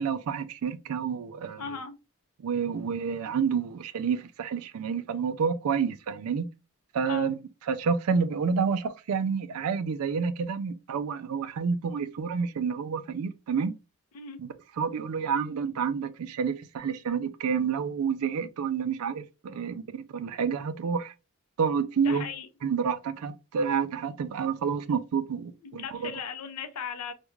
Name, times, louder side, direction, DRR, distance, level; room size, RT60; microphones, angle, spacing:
voice 1, 0.0-1.6 2.4-6.5 6.9-7.4 7.7-13.7 14.4-14.5 14.8-21.1 21.6-22.3 22.6-26.1, right 6 dB, 70° right, 0.4 m, -29 dB
voice 2, 1.6-2.0 7.1-7.3 14.1-14.4 22.0-22.5 25.6-27.1, left 6 dB, 85° left, 0.5 m, -37 dB
2.4 x 2.2 x 3.0 m
head